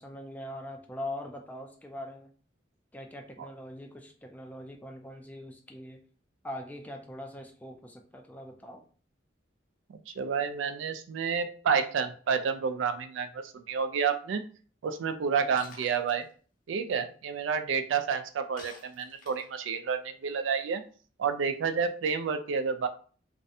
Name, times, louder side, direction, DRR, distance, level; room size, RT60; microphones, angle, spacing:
voice 1, 0.0-2.3 2.9-6.0 6.4-8.8 15.3-15.5, left 1 dB, 10° left, 3 dB, 0.3 m, -42 dB
voice 2, 10.2-14.4 14.8-16.3 16.7-20.8 21.2-22.9, right 6 dB, 85° right, 9 dB, 0.3 m, -29 dB
Shatter, 15.6-16.1 18.6-19.6, left 3 dB, 50° left, 0.6 m, -48 dB
2.5 x 2.1 x 2.6 m, 0.41 s
head